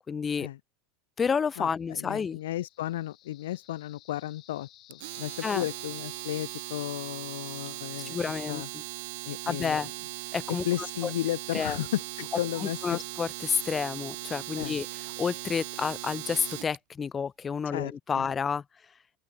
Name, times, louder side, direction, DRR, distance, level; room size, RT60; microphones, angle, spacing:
voice 1, 0.1-0.5 1.2-2.4 5.4-5.6 8.1-8.8 9.5-9.9 10.3-10.7 11.0-11.1 11.5-11.8 12.6-18.6, left 6 dB, 25° left, 0.3 m, -30 dB
voice 2, 1.6-8.2 8.5-8.7 9.3-9.9 10.5-13.0 14.6-14.8 17.7-18.3, left 14 dB, 85° left, 0.5 m, -34 dB
sound 1, 1.9-8.8, left 15 dB, 45° left, 3.5 m, -57 dB
Domestic sounds home sounds, 4.9-16.8, right 22 dB, 70° right, 0.4 m, -39 dB
open air
supercardioid pair, 115°, 0 cm